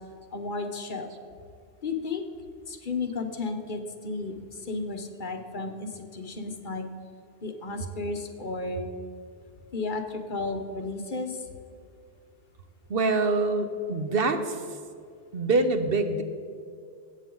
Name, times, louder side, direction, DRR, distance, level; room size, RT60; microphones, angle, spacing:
voice 1, 0.3-1.2 1.8-2.2 2.7-6.9 7.4-8.9 9.7-11.5, left 3 dB, 50° left, 5 dB, 1.0 m, -33 dB
voice 2, 12.9-14.6 15.3-16.2, right 3 dB, 60° right, 8 dB, 0.9 m, -25 dB
14.5 x 8.4 x 3.8 m, 2.3 s
omnidirectional pair, 1.1 m